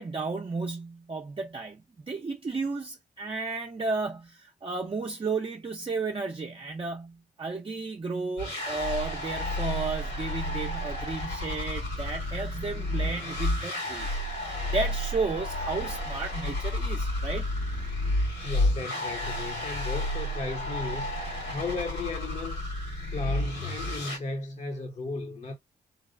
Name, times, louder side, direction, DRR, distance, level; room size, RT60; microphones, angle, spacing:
voice 1, 0.0-17.5, right 3 dB, 30° right, 0.6 m, -33 dB
sound 1, 8.4-24.2, left 1 dB, 85° left, 2.3 m, -31 dB
voice 2, 18.4-21.1 21.5-22.7 23.1-25.6, left 3 dB, 40° left, 0.8 m, -35 dB
4.0 x 2.1 x 2.4 m
cardioid pair, 60°, 19 cm